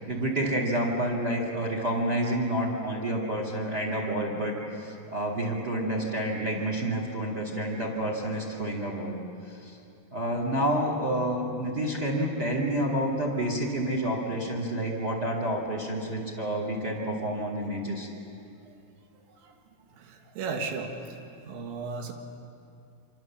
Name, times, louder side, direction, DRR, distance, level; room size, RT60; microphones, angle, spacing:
voice 1, 0.1-9.2 9.5-9.8 10.1-18.1, right 1 dB, 30° right, 1 dB, 2.3 m, -29 dB
voice 2, 19.9-21.2 21.4-22.1, right 4 dB, 85° right, 3 dB, 4.0 m, -36 dB
26.0 x 26.0 x 7.3 m, 2.6 s
omnidirectional pair, 5.1 m